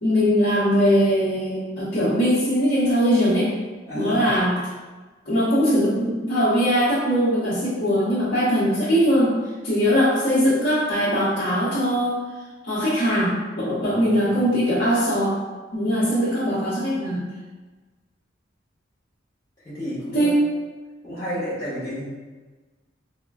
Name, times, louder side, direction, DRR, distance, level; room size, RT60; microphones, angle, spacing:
voice 1, 0.0-3.5 3.9-4.5 5.2-9.4 9.6-12.2 12.6-15.4 15.7-17.3 20.1-20.4, equal, 55° left, -13 dB, 1.0 m, -21 dB
voice 2, 3.9-4.2 13.8-14.2 19.6-20.3 21.0-22.0, equal, 20° left, -12 dB, 1.3 m, -31 dB
3.6 x 2.2 x 2.3 m, 1.3 s
head